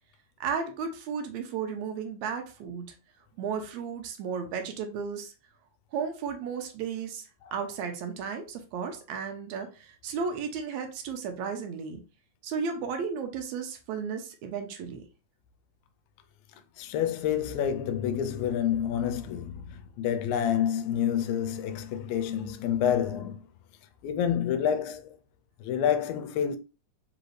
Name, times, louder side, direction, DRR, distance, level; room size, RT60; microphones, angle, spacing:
voice 1, 0.4-2.9 3.4-5.3 5.9-7.2 7.5-9.7 10.0-12.0 12.4-15.0, right 6 dB, 85° right, 2.0 m, -34 dB
voice 2, 16.8-23.4 24.0-25.0 25.6-26.6, left 9 dB, 80° left, 1.8 m, -28 dB
4.8 x 2.6 x 3.1 m
omnidirectional pair, 3.3 m